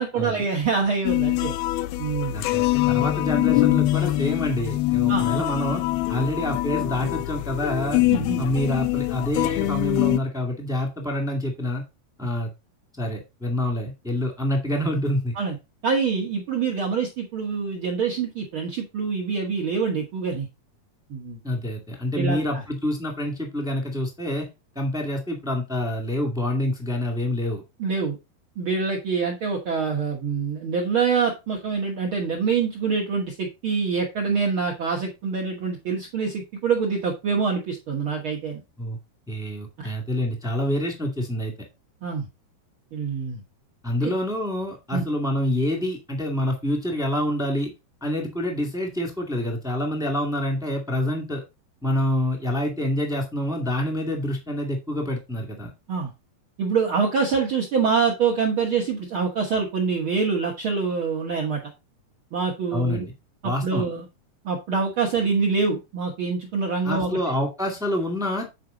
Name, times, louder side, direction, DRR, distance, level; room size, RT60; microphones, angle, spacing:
voice 1, 0.0-1.5 2.0-2.4 5.1-5.3 8.1-8.4 15.4-15.6 15.8-20.5 21.1-21.4 22.1-22.6 27.8-28.2 28.6-38.6 39.8-39.9 42.0-42.3 42.9-43.4 44.0-44.1 44.9-45.0 55.9-56.1 56.6-61.6 62.3-63.1 63.4-64.0 64.4-67.2, right 5 dB, 80° right, 0 dB, 1.1 m, -25 dB
sound 1, 1.0-10.2, left 18 dB, 85° left, 2.4 m, -24 dB
voice 2, 2.3-5.8 6.1-8.0 8.4-11.8 12.2-12.5 13.0-15.3 21.4-24.5 24.7-27.6 38.8-39.0 39.3-41.5 43.8-47.7 48.0-51.4 51.8-55.7 62.7-63.1 63.4-63.8 66.8-68.5, left 1 dB, ahead, 2 dB, 0.8 m, -27 dB
9.2 x 4.9 x 3.9 m, 0.25 s
omnidirectional pair, 4.5 m